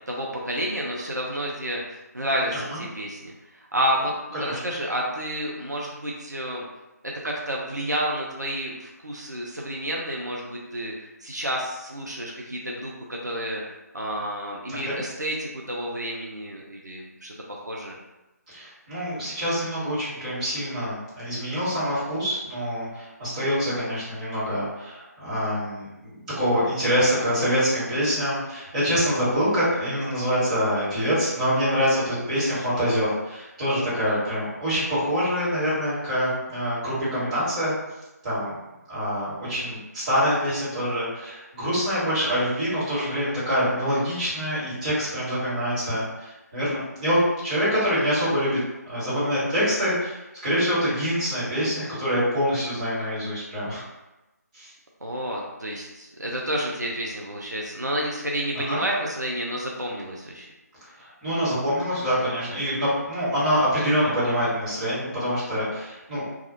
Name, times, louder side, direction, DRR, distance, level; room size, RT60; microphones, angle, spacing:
voice 1, 0.1-3.3 3.7-6.7 7.0-13.6 13.9-18.0 33.9-34.2 55.0-60.5, equal, 85° right, -2 dB, 0.5 m, -30 dB
voice 2, 14.7-15.0 18.5-37.7 38.2-38.5 38.9-48.6 48.8-53.8 54.5-54.7 58.7-58.8 61.0-66.2, equal, 25° right, -12 dB, 1.2 m, -25 dB
2.3 x 2.0 x 2.7 m, 1.0 s
figure-of-eight pair, 150°, 9 cm